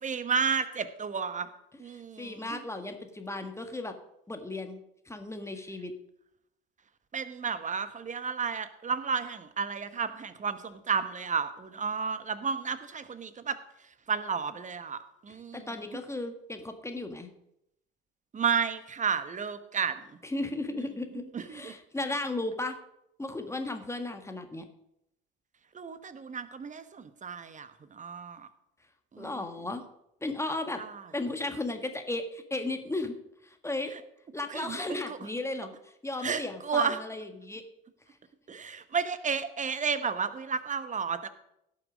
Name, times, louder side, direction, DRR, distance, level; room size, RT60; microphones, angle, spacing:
voice 1, 0.0-1.5 1.8-2.6 7.1-13.6 14.1-16.0 18.3-20.0 21.3-21.7 25.7-28.5 29.1-29.3 30.8-30.9 34.5-35.2 36.2-37.0 38.5-41.3, right 6 dB, 25° right, 12 dB, 1.1 m, -32 dB
voice 2, 1.9-3.9 4.3-4.8 5.0-5.9 15.3-17.3 20.2-22.8 23.2-24.6 29.2-29.8 30.2-30.8 31.1-33.1 33.4-33.9 34.3-37.6, left 2 dB, 10° left, 6 dB, 1.6 m, -35 dB
16.5 x 6.4 x 5.2 m, 0.81 s
figure-of-eight pair, 65°, 30 cm